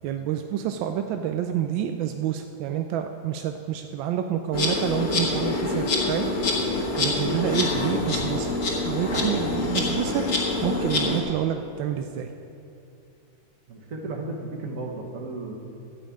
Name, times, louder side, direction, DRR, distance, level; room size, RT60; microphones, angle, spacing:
voice 1, 0.0-6.3 7.0-8.5 8.8-12.3, right 9 dB, 85° right, 6 dB, 1.3 m, -28 dB
Insect, 4.5-11.2, left 2 dB, 45° left, 1.6 m, -26 dB
voice 2, 13.7-15.5, right 2 dB, 45° right, 0 dB, 1.6 m, -34 dB
13.0 x 5.4 x 8.5 m, 2.6 s
omnidirectional pair, 2.1 m